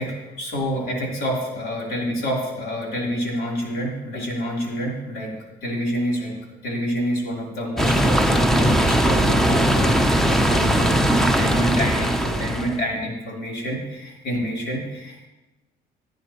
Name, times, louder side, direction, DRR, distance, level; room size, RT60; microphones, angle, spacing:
voice 1, 0.0-5.3 5.6-6.3 6.6-15.3, equal, 75° left, -3 dB, 3.7 m, -28 dB
sound 1, 7.8-12.8, equal, ahead, 0.9 m, -19 dB
16.5 x 9.4 x 3.1 m, 1.1 s
cardioid pair, 110°, 17 cm